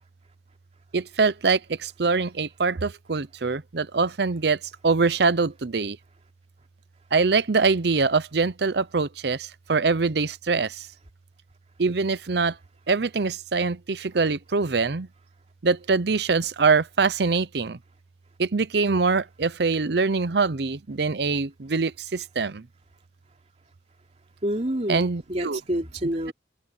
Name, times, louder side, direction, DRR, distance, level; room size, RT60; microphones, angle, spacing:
voice 1, 0.9-4.6 4.8-6.0 7.1-10.9 11.8-12.5 12.9-15.1 15.6-17.8 18.4-22.6 24.9-25.6, right 4 dB, 60° right, 0.7 m, -24 dB
voice 2, 24.4-26.3, right 1 dB, 35° right, 3.2 m, -28 dB
head